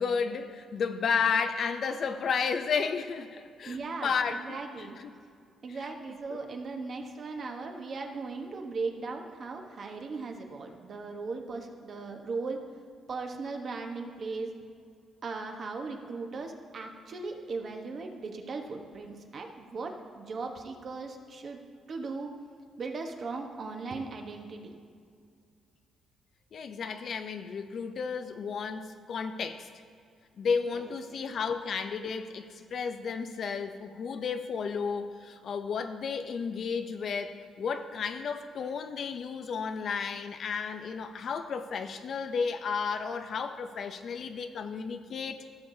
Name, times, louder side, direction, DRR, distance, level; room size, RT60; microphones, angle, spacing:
voice 1, 0.0-4.4 4.8-5.1 6.3-6.4 26.5-29.7 30.4-45.4, left 5 dB, 55° left, 9 dB, 0.6 m, -32 dB
voice 2, 3.6-4.9 5.6-12.6 13.1-14.5 15.2-21.6 21.9-22.3 22.8-24.7 30.7-30.9, right 4 dB, 50° right, 3 dB, 1.1 m, -38 dB
16.0 x 6.7 x 2.7 m, 2.3 s
cardioid pair, 90°, 0 cm